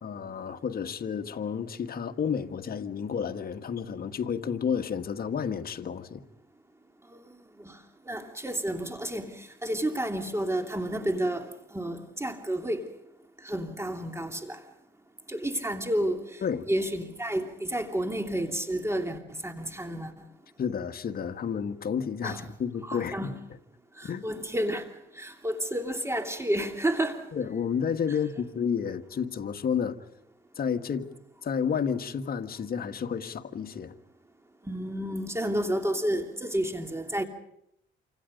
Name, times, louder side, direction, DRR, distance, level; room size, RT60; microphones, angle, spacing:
voice 1, 0.0-6.2 16.4-16.7 20.6-23.3 24.1-24.3 27.3-30.0 30.6-31.1 31.4-33.9, left 7 dB, 50° left, 1.7 m, -31 dB
voice 2, 8.1-12.9 13.4-14.6 15.3-16.4 16.7-20.1 22.2-22.5 22.8-23.4 24.0-24.9 25.1-27.3 34.6-37.2, right 1 dB, 15° right, 3.0 m, -31 dB
28.0 x 26.0 x 5.3 m
cardioid pair, 90°, 20 cm